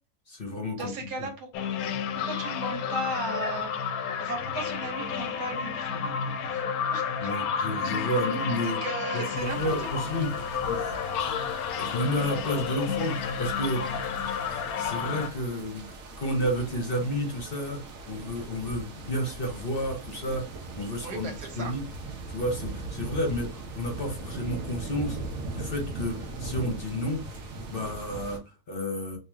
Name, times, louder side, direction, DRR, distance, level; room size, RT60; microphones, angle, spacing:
voice 1, 0.3-0.9 7.2-8.8 9.1-10.3 10.6-11.3 11.8-17.8 18.1-20.4 20.8-21.8 22.3-25.2 25.5-27.2 27.7-29.2, equal, 45° left, 2 dB, 0.9 m, -31 dB
voice 2, 0.8-1.5 2.2-3.7 4.2-6.6 6.9-7.3 8.6-10.0 21.0-21.8 22.8-22.9, right 2 dB, 90° right, 3 dB, 1.7 m, -36 dB
sound 1, 1.5-15.3, left 7 dB, 75° left, 1.0 m, -31 dB
sound 2, 9.3-28.4, right 3 dB, 60° right, 1.2 m, -40 dB
3.1 x 3.0 x 3.4 m, 0.32 s
omnidirectional pair, 1.7 m